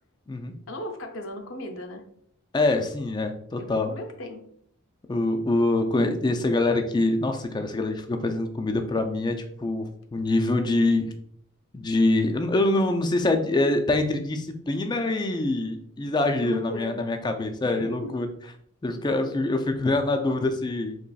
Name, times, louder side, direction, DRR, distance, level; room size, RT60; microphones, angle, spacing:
voice 1, 0.7-2.0 3.6-4.4 16.4-17.0 17.6-18.1, left 1 dB, 70° left, 5 dB, 0.5 m, -36 dB
voice 2, 2.5-3.9 5.1-11.1 11.7-18.3 18.8-21.0, left 2 dB, 20° left, 6 dB, 0.3 m, -25 dB
4.0 x 2.9 x 2.3 m, 0.65 s
head